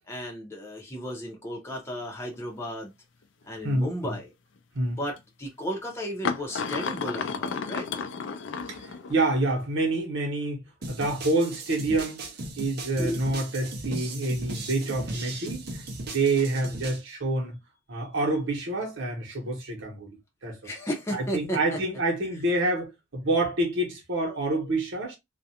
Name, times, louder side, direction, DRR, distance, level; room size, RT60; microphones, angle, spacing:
voice 1, 0.1-2.9 3.5-4.3 5.0-7.9 12.9-13.2 20.6-21.8, equal, 15° left, 0.6 m, -34 dB
sound 1, 1.7-1.8 2.3-2.6 3.8-3.9 5.2-5.3 6.2-9.3, left 5 dB, 75° left, 0.4 m, -32 dB
voice 2, 3.6-4.1 4.7-5.0 8.6-10.6 10.9-12.2 12.6-17.6 17.9-20.7 21.1-25.2, right 2 dB, 85° right, 0.9 m, -27 dB
sound 2, 10.8-17.0, right 2 dB, 55° right, 0.6 m, -37 dB
2.4 x 2.2 x 2.8 m
head